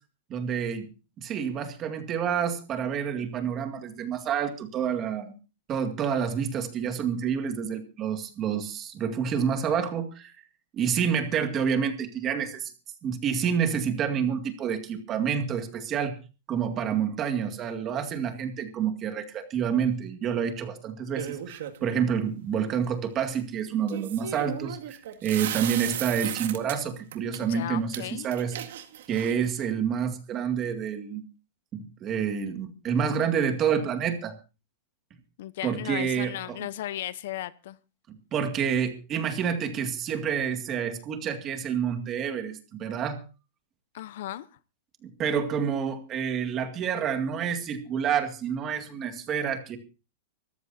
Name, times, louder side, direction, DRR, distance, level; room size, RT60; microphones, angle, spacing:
voice 1, 0.3-0.9 1.2-5.3 5.7-10.3 10.7-12.7 13.0-16.2 16.5-28.6 29.1-31.2 31.7-34.3 35.6-36.6 38.3-43.2 45.0-49.8, right 7 dB, 20° right, 7 dB, 2.1 m, -28 dB
sound 1, 21.2-21.9 23.9-26.8 27.1-27.4 27.9-28.0 28.3-29.5, right 11 dB, 65° right, 2.1 m, -35 dB
voice 2, 27.4-28.3 35.4-37.8 43.9-44.5, left 13 dB, 55° left, 17 dB, 0.7 m, -36 dB
25.0 x 14.5 x 2.7 m, 0.32 s
supercardioid pair, 170°, 0 cm